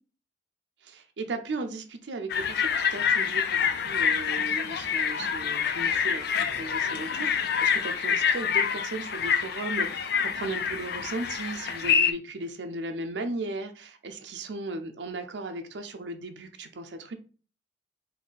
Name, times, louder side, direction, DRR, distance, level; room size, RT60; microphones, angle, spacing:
voice 1, 0.8-17.2, right 2 dB, 75° right, 0.5 m, -36 dB
sound 1, 2.3-12.1, left 7 dB, 60° left, 0.4 m, -27 dB
4.1 x 2.7 x 3.9 m
head